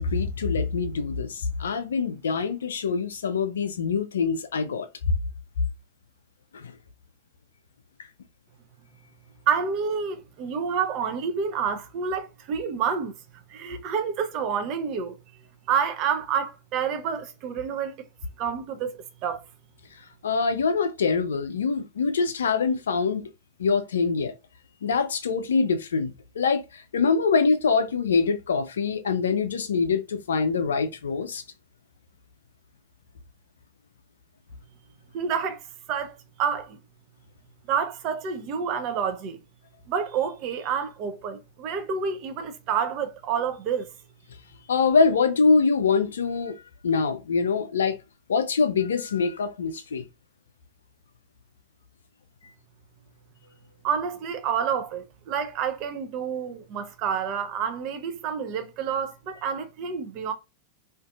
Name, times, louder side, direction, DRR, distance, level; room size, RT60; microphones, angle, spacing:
voice 1, 0.0-4.9 6.5-6.7 20.2-23.3 23.6-24.3 24.8-31.4 44.7-46.6 46.8-48.0 48.3-50.0, left 5 dB, 65° left, 0.4 m, -24 dB
voice 2, 9.5-13.1 13.5-15.2 15.7-17.9 18.4-19.0 19.2-19.4 35.1-35.6 35.9-36.8 37.7-39.4 39.9-43.9 53.8-60.3, right 7 dB, 40° right, 0.5 m, -28 dB
2.5 x 2.4 x 2.3 m
figure-of-eight pair, 90°, 0 cm